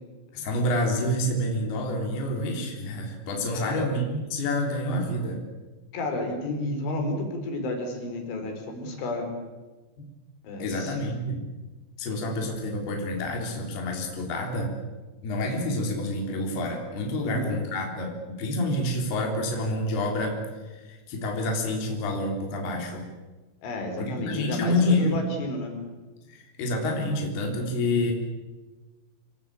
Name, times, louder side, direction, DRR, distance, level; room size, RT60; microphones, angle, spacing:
voice 1, 0.3-5.4 10.6-11.4 12.0-14.7 15.2-20.4 20.6-23.1 24.0-25.2 26.3-28.1, left 1 dB, 60° left, 1 dB, 5.5 m, -28 dB
voice 2, 3.5-3.9 5.9-9.3 10.4-10.9 12.3-12.4 17.2-17.5 23.6-25.8, left 2 dB, 80° left, 4 dB, 6.7 m, -31 dB
27.0 x 21.5 x 8.7 m, 1.2 s
omnidirectional pair, 5.4 m